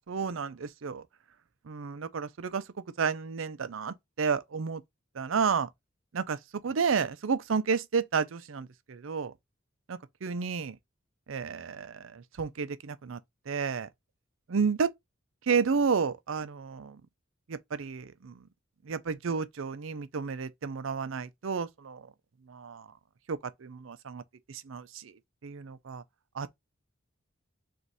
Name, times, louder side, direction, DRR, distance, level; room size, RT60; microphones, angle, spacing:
voice 1, 0.1-1.0 1.7-2.6 3.0-4.8 5.2-5.7 6.1-6.4 6.6-9.3 9.9-10.8 11.3-13.2 13.5-13.9 14.5-14.9 15.5-17.0 17.5-18.4 18.9-22.0 22.5-22.9 23.3-24.2 24.5-25.1 25.4-26.0 26.4-26.6, right 5 dB, 75° right, 0.5 m, -31 dB
4.1 x 2.6 x 4.7 m
head